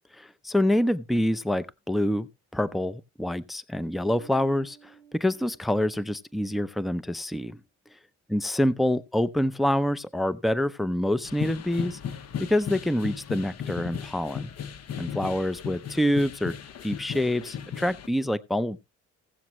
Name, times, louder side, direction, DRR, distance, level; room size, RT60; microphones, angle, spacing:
voice 1, 0.1-7.6 8.3-12.0 12.4-14.5 15.0-16.6 16.8-18.8, left 1 dB, ahead, 0.5 m, -26 dB
Bass guitar, 4.1-6.5, right 7 dB, 20° left, 2.7 m, -54 dB
sound 1, 11.2-18.1, left 8 dB, 55° left, 1.1 m, -36 dB
16.5 x 7.3 x 3.0 m
cardioid pair, 90°, 30 cm